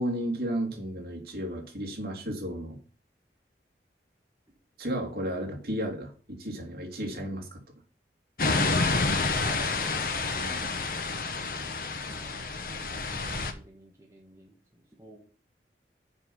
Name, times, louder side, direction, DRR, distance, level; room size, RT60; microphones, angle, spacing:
voice 1, 0.0-2.8 4.8-7.4 10.4-10.6, equal, 60° right, 1 dB, 2.8 m, -33 dB
sound 1, 8.4-13.5, left 3 dB, 55° left, 1.1 m, -29 dB
voice 2, 9.4-10.1 12.1-12.4 12.7-15.2, right 1 dB, 15° right, -1 dB, 1.7 m, -49 dB
7.1 x 5.9 x 7.2 m, 0.41 s
head